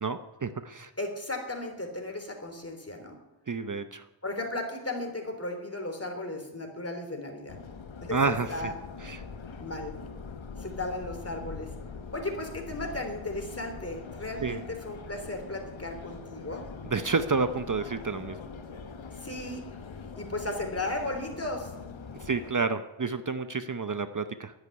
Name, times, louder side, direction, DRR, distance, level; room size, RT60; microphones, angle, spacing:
voice 1, 0.0-0.9 3.5-4.0 8.1-8.5 9.0-9.2 14.4-14.6 16.9-18.4 22.2-24.5, right 4 dB, 40° right, 10 dB, 0.7 m, -29 dB
voice 2, 1.0-3.2 4.2-7.6 8.0-8.7 9.6-9.9 10.6-11.7 12.1-16.7 19.1-19.6 20.1-21.7, left 2 dB, 30° left, 3 dB, 3.5 m, -35 dB
Subway metro underground, 7.5-22.5, left 5 dB, 75° left, 1.1 m, -43 dB
11.5 x 10.5 x 9.7 m, 1.1 s
wide cardioid pair, 75°, 46 cm